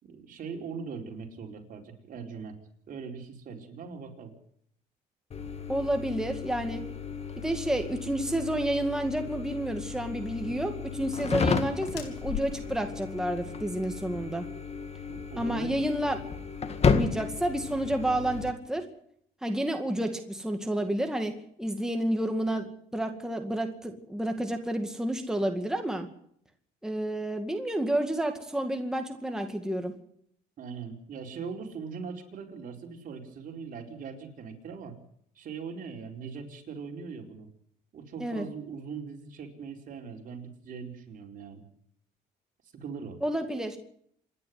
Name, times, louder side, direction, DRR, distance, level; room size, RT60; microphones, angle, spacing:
voice 1, 0.0-2.6 2.9-4.3 15.1-15.7 30.6-35.0 35.3-37.5 37.9-41.6 42.7-43.2, right 5 dB, 50° right, 2 dB, 4.5 m, -40 dB
sound 1, 5.3-18.5, left 5 dB, 40° left, 2.0 m, -33 dB
voice 2, 5.7-6.9 7.4-14.4 15.4-16.2 16.9-18.9 19.4-26.1 26.8-29.9 38.2-38.5 43.2-43.8, right 1 dB, 5° right, 5 dB, 2.1 m, -30 dB
sound 2, 11.8-16.4, left 10 dB, 80° left, 3.3 m, -43 dB
27.0 x 11.0 x 9.5 m, 0.68 s
cardioid pair, 110°, 17 cm